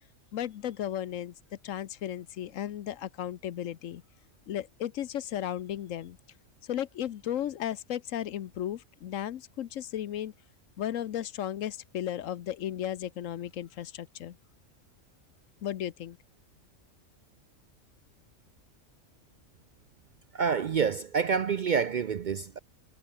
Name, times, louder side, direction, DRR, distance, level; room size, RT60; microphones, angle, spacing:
voice 1, 0.3-1.3 1.6-4.0 4.5-6.2 6.6-10.3 10.8-14.4 15.6-16.2, left 11 dB, 85° left, 1.2 m, -35 dB
voice 2, 20.3-22.6, right 6 dB, 55° right, 0.5 m, -27 dB
omnidirectional pair, 1.3 m